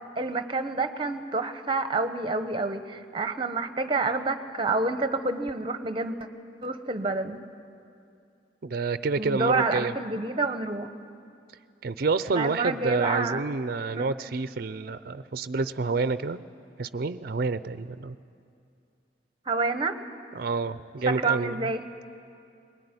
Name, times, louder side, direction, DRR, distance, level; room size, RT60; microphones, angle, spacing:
voice 1, 0.2-6.1 6.6-7.4 9.2-10.9 12.3-13.5 13.9-14.1 19.5-20.0 21.1-21.8, right 3 dB, 30° right, 9 dB, 1.0 m, -28 dB
voice 2, 8.6-9.9 11.8-16.4 16.8-18.2 20.3-21.7, right 4 dB, 55° right, 13 dB, 0.5 m, -28 dB
21.0 x 19.5 x 9.7 m, 2.5 s
head